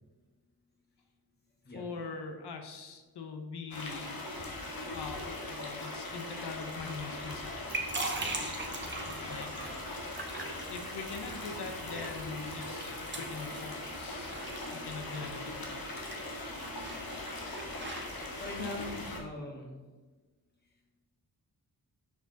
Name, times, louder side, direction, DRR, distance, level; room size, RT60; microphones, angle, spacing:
voice 1, 1.7-4.1 4.9-7.6 9.3-9.5 10.7-14.4 14.7-15.8, left 4 dB, 85° left, 5 dB, 0.8 m, -42 dB
sound 1, 3.7-19.2, left 2 dB, 65° left, 1.3 m, -40 dB
sound 2, 7.5-18.9, right 2 dB, 30° right, 1.0 m, -42 dB
voice 2, 18.4-19.8 20.6-20.7, left 2 dB, 25° left, -2 dB, 1.6 m, -41 dB
6.9 x 4.9 x 3.9 m, 1.3 s
wide cardioid pair, 145°, 39 cm